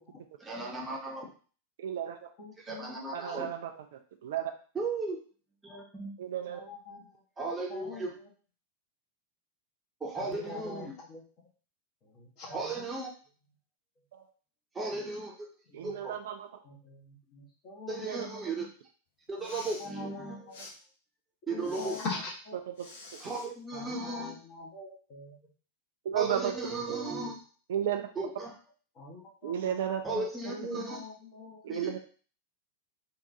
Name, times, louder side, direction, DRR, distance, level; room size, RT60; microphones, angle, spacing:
voice 1, 0.4-1.2 2.7-3.5 4.7-5.2 5.6-6.1 7.4-8.1 10.0-10.9 12.5-13.1 14.7-15.5 15.8-16.1 17.9-18.7 19.3-20.4 21.5-22.0 23.2-24.3 26.1-27.4 28.2-28.5 30.0-31.0 31.7-32.0, right 3 dB, 15° right, -2 dB, 0.9 m, -35 dB
voice 2, 1.8-2.2 3.1-3.8 4.2-4.5 6.2-6.6 14.1-14.3 15.7-16.5 18.0-18.4 22.7-22.9 26.0-26.5 26.9-27.0 27.7-28.0 29.4-30.2 30.7-30.8 31.6-32.0, right 10 dB, 55° right, 6 dB, 0.3 m, -33 dB
voice 3, 2.4-3.4 6.5-8.1 10.2-11.5 12.0-12.6 15.7-16.0 16.6-18.2 19.4-20.7 21.5-22.6 23.7-25.5 28.9-31.8, left 3 dB, 35° left, -4 dB, 1.4 m, -44 dB
Respiratory sounds, 19.3-19.9 20.5-20.7 21.6-22.1 22.8-23.5, left 2 dB, 60° left, 0.8 m, -47 dB
3.7 x 2.6 x 2.8 m, 0.40 s
figure-of-eight pair, 90°, 0 cm